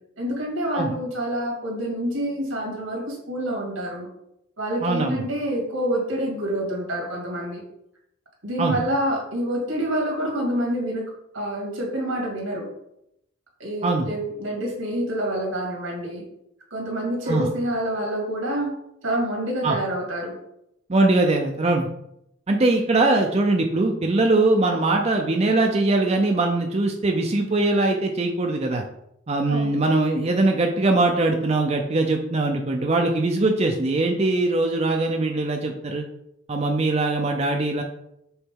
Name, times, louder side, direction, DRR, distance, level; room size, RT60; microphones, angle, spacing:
voice 1, 0.2-4.1 4.6-7.6 8.4-11.0 11.3-12.7 13.6-16.2 16.7-18.8 19.0-20.3 29.5-29.8, right 1 dB, 85° right, 0 dB, 2.3 m, -27 dB
voice 2, 4.8-5.2 8.6-8.7 13.8-14.1 17.3-17.5 19.6-19.8 20.9-21.9 22.5-28.8 29.3-36.0 36.5-37.8, right 2 dB, 30° right, 2 dB, 0.6 m, -21 dB
7.0 x 4.0 x 3.8 m, 0.78 s
head